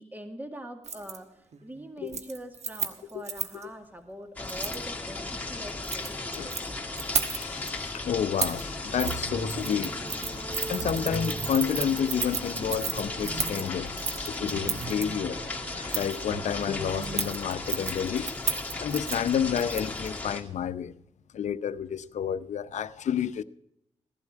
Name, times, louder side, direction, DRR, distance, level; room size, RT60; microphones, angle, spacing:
voice 1, 0.0-6.6, right 1 dB, 15° right, 2.1 m, -43 dB
Keys jangling, 0.8-1.2 1.5-1.8 2.1-3.6 4.5-4.8 5.7-6.6 7.0-7.7 8.4-8.6 9.0-9.2 9.5-15.0 15.9-16.2 17.0-20.1 20.4-20.5, right 6 dB, 70° right, 1.2 m, -33 dB
sound 1, 4.4-20.4, left 3 dB, 15° left, 2.3 m, -36 dB
voice 2, 7.3-9.9 10.7-18.5 18.8-20.9 21.3-23.4, left 8 dB, 85° left, 0.7 m, -30 dB
sound 2, 8.7-17.3, right 4 dB, 45° right, 0.8 m, -40 dB
16.0 x 12.0 x 4.6 m
cardioid pair, 95°, 12 cm